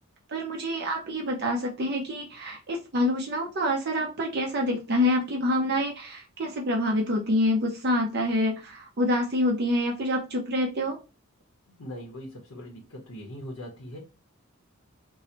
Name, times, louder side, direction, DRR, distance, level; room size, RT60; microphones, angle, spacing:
voice 1, 0.3-11.0, left 1 dB, 50° right, 1 dB, 0.6 m, -27 dB
voice 2, 11.8-14.0, equal, 75° left, -1 dB, 0.9 m, -40 dB
4.6 x 2.0 x 2.7 m, 0.30 s
head